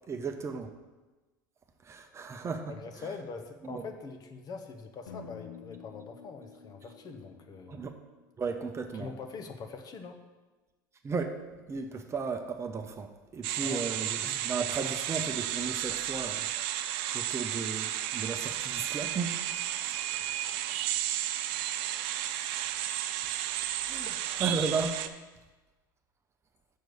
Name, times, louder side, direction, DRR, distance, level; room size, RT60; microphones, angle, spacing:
voice 1, 0.1-0.7 1.8-2.7 3.6-3.8 7.7-7.9 8.4-9.1 11.0-11.4 11.7-16.5 17.1-19.4 23.9-24.1 24.4-25.1, right 5 dB, 25° right, 6 dB, 0.7 m, -34 dB
voice 2, 2.7-7.9 8.9-10.2 13.6-13.9 14.2-14.5, left 4 dB, 40° left, 6 dB, 0.9 m, -43 dB
sound 1, 5.1-9.2, left 6 dB, 85° left, 0.6 m, -51 dB
sound 2, 13.4-25.1, right 12 dB, 60° right, 0.5 m, -33 dB
6.6 x 4.6 x 6.7 m, 1.2 s
hypercardioid pair, 85°, 10 cm